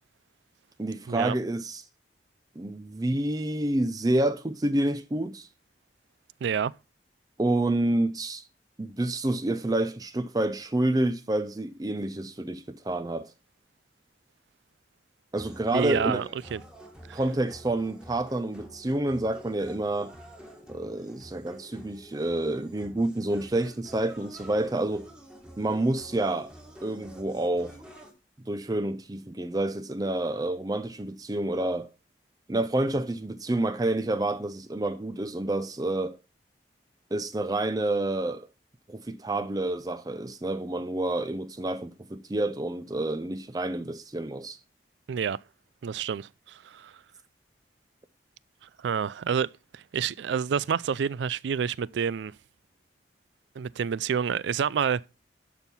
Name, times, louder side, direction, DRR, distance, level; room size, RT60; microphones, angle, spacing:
voice 1, 0.8-1.8 2.6-5.5 7.4-8.4 8.8-13.3 15.3-16.3 17.1-20.1 20.7-25.1 25.6-26.5 26.8-27.8 28.5-31.9 32.5-36.2 37.1-38.5 38.9-44.6, right 1 dB, 20° right, 0.5 m, -28 dB
voice 2, 6.4-6.7 15.7-16.6 17.1-17.2 45.1-45.4 45.8-46.9 48.8-52.3 53.6-55.1, right 7 dB, 85° right, 0.4 m, -28 dB
sound 1, 15.3-28.1, equal, 5° right, 1.7 m, -48 dB
12.5 x 4.6 x 5.5 m
head